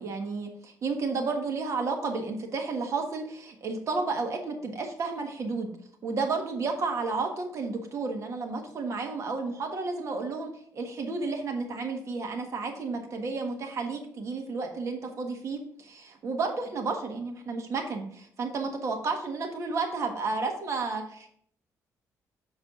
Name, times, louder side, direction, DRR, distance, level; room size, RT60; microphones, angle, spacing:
voice 1, 0.0-5.7 6.0-21.3, right 4 dB, 50° right, 3 dB, 1.4 m, -32 dB
6.9 x 4.8 x 3.7 m, 0.62 s
cardioid pair, 110°, 6 cm